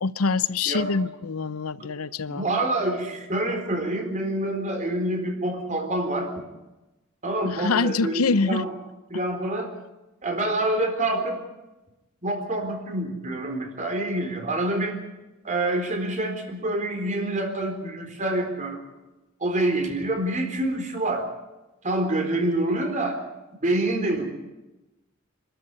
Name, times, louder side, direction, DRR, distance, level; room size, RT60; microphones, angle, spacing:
voice 1, 0.0-2.4 7.6-8.6, left 4 dB, 90° left, 17 dB, 0.7 m, -25 dB
voice 2, 2.3-6.5 7.2-8.7 9.1-9.7 10.2-11.4 12.2-15.0 15.4-18.8 19.4-21.3 21.8-23.2 23.6-24.2, right 1 dB, 35° right, 4 dB, 4.1 m, -26 dB
27.0 x 12.5 x 9.8 m, 1.0 s
head